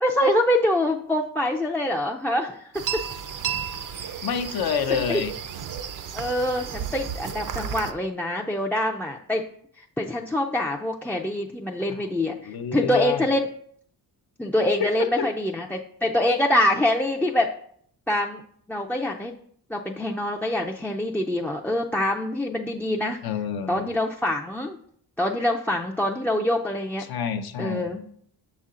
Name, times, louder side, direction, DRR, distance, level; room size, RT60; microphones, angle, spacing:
voice 1, 0.0-3.0 3.9-4.3 4.9-5.2 6.1-9.4 9.8-13.5 14.4-17.5 18.1-18.4 18.7-19.3 19.7-23.2 23.7-24.8 25.2-27.0 27.6-28.0, left 1 dB, 5° left, -1 dB, 0.3 m, -25 dB
sound 1, 2.7-7.9, right 7 dB, 55° right, 0.5 m, -33 dB
voice 2, 4.2-5.3 11.9-12.0 12.3-13.3 14.8-15.3 23.2-23.8 27.0-28.0, left 7 dB, 70° left, 8 dB, 0.6 m, -28 dB
6.6 x 4.2 x 3.7 m, 0.63 s
cardioid pair, 95°, 38 cm